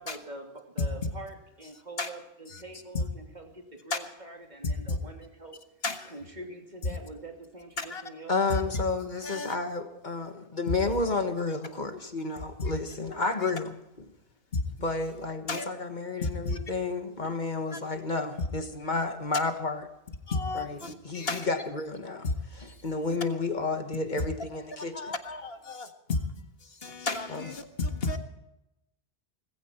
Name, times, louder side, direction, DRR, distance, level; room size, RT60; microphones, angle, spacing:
voice 1, 0.0-5.6 6.0-8.8, right 2 dB, 45° right, 2.9 m, -45 dB
voice 2, 4.6-5.0 5.8-6.1 6.9-7.0 7.8-8.0 8.5-8.6 9.2-9.6 10.7-10.8 12.6-12.7 13.4-13.5 14.5-14.6 15.5-15.7 16.2-16.6 17.7-17.8 18.4-18.5 20.3-21.5 22.2-22.3 22.6-22.8 24.2-24.3 24.9-26.3 26.6-28.2, left 3 dB, 65° left, 1.8 m, -32 dB
voice 3, 8.3-13.7 14.8-19.8 20.5-20.8 21.0-22.2 22.8-25.1 27.3-27.4, left 3 dB, 45° left, 1.6 m, -31 dB
19.5 x 16.0 x 4.4 m
omnidirectional pair, 1.1 m